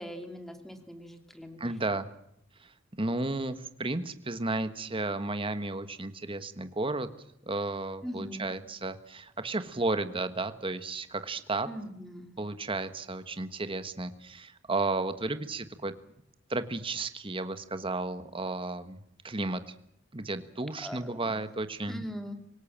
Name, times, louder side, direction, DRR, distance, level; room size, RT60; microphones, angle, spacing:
voice 1, 0.0-1.6 8.0-8.5 11.7-12.3 20.8-21.3 21.9-22.4, equal, ahead, 6 dB, 2.7 m, -41 dB
voice 2, 1.6-2.1 2.6-2.7 3.0-7.1 7.5-11.7 12.4-15.9 16.5-19.7 20.1-22.1, right 2 dB, 25° right, 11 dB, 1.4 m, -33 dB
25.5 x 18.0 x 7.5 m, 0.76 s
head